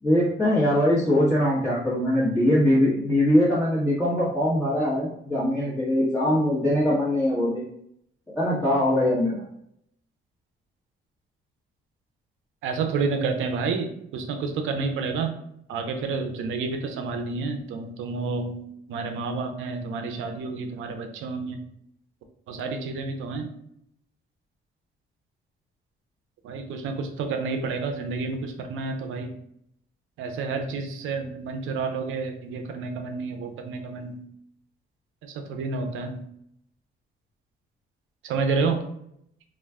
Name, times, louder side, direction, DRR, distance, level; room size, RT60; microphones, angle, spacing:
voice 1, 0.0-7.6 8.3-9.4, left 1 dB, 5° left, -10 dB, 1.0 m, -22 dB
voice 2, 12.6-15.3 15.7-21.6 22.5-23.5 26.4-29.3 30.2-34.3 35.2-36.2 38.2-38.9, right 4 dB, 85° right, 5 dB, 0.5 m, -29 dB
2.4 x 2.2 x 3.4 m, 0.72 s
cardioid pair, 90°, 20 cm